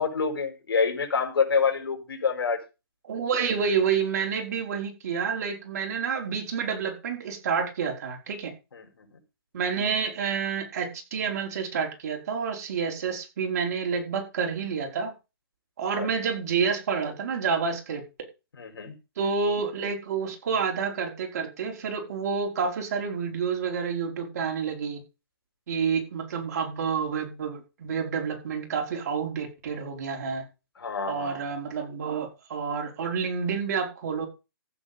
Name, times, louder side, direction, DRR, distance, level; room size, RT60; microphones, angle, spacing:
voice 1, 0.0-2.6 8.7-9.2 16.0-16.1 18.6-19.0 30.8-31.4, left 5 dB, 75° left, 5.7 m, -27 dB
voice 2, 3.0-8.5 9.5-15.2 15.8-18.3 19.2-25.0 25.7-30.5 31.1-34.3, right 6 dB, 40° right, 5.2 m, -29 dB
14.5 x 8.2 x 5.4 m
hypercardioid pair, 170°, 12 cm